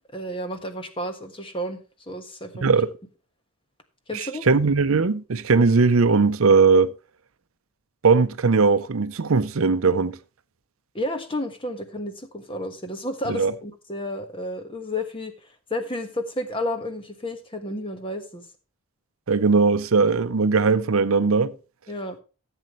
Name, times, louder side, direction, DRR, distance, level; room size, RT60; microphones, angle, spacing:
voice 1, 0.1-1.8 2.1-2.7 4.1-4.5 10.9-18.5 21.9-22.2, left 1 dB, 25° left, 1.3 m, -31 dB
voice 2, 4.1-6.9 8.0-10.2 13.4-13.5 19.3-21.5, right 4 dB, 70° right, 0.6 m, -19 dB
15.0 x 7.9 x 3.1 m
head